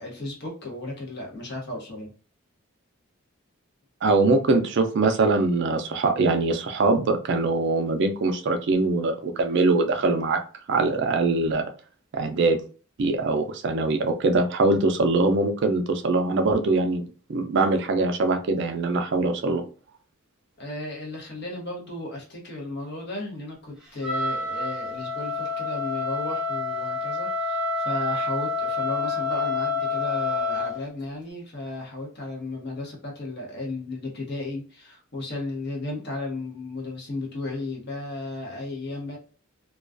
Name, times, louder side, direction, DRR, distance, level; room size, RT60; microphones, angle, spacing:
voice 1, 0.0-2.1 20.6-39.2, left 2 dB, 50° left, -1 dB, 0.8 m, -34 dB
voice 2, 4.0-10.4 10.7-11.6 12.1-12.6 13.0-19.6, right 3 dB, 55° right, 6 dB, 0.4 m, -22 dB
Wind instrument woodwind instrument, 24.0-30.8, left 3 dB, 5° right, 0.5 m, -28 dB
2.3 x 2.2 x 2.4 m, 0.38 s
head